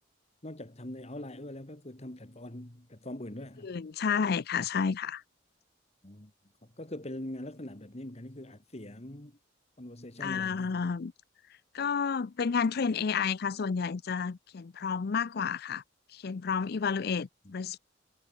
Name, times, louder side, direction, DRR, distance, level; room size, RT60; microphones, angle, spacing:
voice 1, 0.4-3.8 6.0-6.3 6.6-9.4 9.8-10.8 17.4-17.5, left 1 dB, 35° left, 2.3 m, -42 dB
voice 2, 3.6-5.2 10.2-11.1 11.7-15.8 16.1-17.8, left 6 dB, 55° left, 0.5 m, -31 dB
head